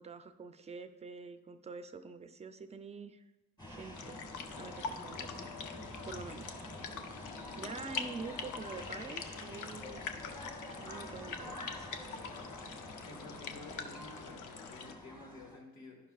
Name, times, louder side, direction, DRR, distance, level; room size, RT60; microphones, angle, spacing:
voice 1, 0.0-3.2 3.7-4.2 4.6-5.5 6.0-6.5 7.6-10.0 10.7-11.9, right 4 dB, 20° right, 9 dB, 0.4 m, -46 dB
sound 1, 3.6-15.6, left 1 dB, 15° left, 1.5 m, -47 dB
sound 2, 3.9-14.9, left 6 dB, 85° left, 0.6 m, -44 dB
voice 2, 13.1-16.0, left 2 dB, 70° left, 1 dB, 1.9 m, -52 dB
11.0 x 5.6 x 2.4 m, 1.1 s
cardioid pair, 90°, 30 cm